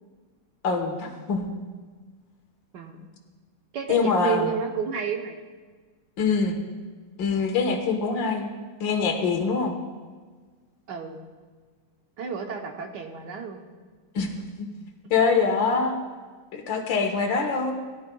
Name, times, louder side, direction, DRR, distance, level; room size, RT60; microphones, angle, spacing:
voice 1, 0.6-1.5 3.9-4.5 6.2-6.6 7.2-8.4 8.8-9.7 14.2-14.7 15.1-16.0 16.5-17.7, left 5 dB, 80° left, 4 dB, 1.9 m, -24 dB
voice 2, 2.7-3.1 3.7-5.4 10.9-11.2 12.2-13.6, right 7 dB, 70° right, 3 dB, 1.5 m, -31 dB
17.0 x 11.5 x 2.3 m, 1.5 s
omnidirectional pair, 2.1 m